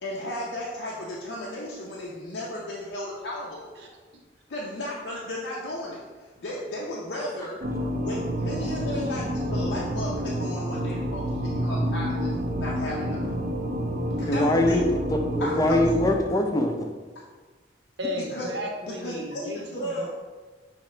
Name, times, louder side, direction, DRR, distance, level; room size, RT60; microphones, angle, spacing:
voice 1, 0.0-4.0 4.5-7.6 8.0-13.2 14.2-14.8 15.4-15.8 18.2-18.5 18.9-20.1, left 1 dB, 80° left, -4 dB, 0.6 m, -34 dB
sound 1, 7.6-16.1, equal, 50° right, 0.4 m, -29 dB
voice 2, 14.3-14.8 15.1-16.9, left 1 dB, 20° left, 3 dB, 0.4 m, -23 dB
voice 3, 18.0-20.1, left 1 dB, 75° right, 1 dB, 0.8 m, -34 dB
5.8 x 2.8 x 3.2 m, 1.4 s
head